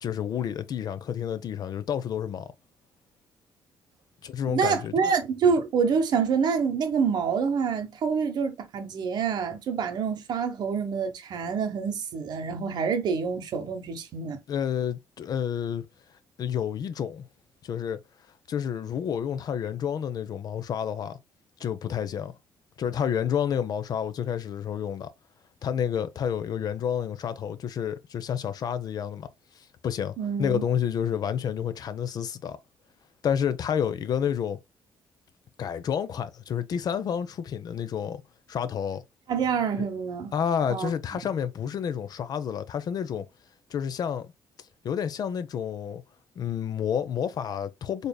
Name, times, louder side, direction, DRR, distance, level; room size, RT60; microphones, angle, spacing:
voice 1, 0.0-2.5 4.2-5.1 14.5-15.9 16.4-17.3 17.6-18.0 18.5-21.2 21.6-22.3 22.8-25.1 25.6-29.3 29.8-32.6 33.2-34.6 35.6-38.2 38.5-39.0 39.8-39.9 40.3-43.3 43.7-44.3 44.8-46.0 46.4-48.1, left 8 dB, 55° left, 0.5 m, -29 dB
voice 2, 4.5-14.4 30.2-30.6 39.3-40.3 40.7-40.9, right 6 dB, 65° right, 1.0 m, -27 dB
4.0 x 3.3 x 2.2 m
cardioid pair, 85°, 8 cm